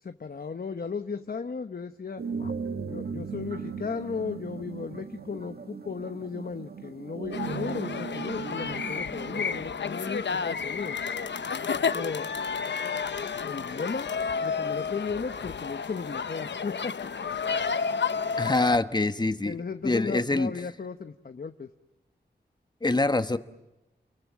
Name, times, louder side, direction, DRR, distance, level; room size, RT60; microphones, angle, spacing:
voice 1, 0.0-2.5 2.9-11.0 11.9-12.3 13.4-14.1 14.4-17.1 19.4-21.7, left 5 dB, 55° left, 8 dB, 1.1 m, -35 dB
sound 1, 2.2-9.7, right 5 dB, 60° right, 1.6 m, -37 dB
sound 2, 7.3-18.8, left 5 dB, 80° left, 0.9 m, -31 dB
voice 2, 18.4-19.6 19.8-20.5 22.8-23.4, left 2 dB, 25° left, 10 dB, 1.2 m, -25 dB
29.5 x 23.0 x 7.5 m, 0.96 s
wide cardioid pair, 100°, 18 cm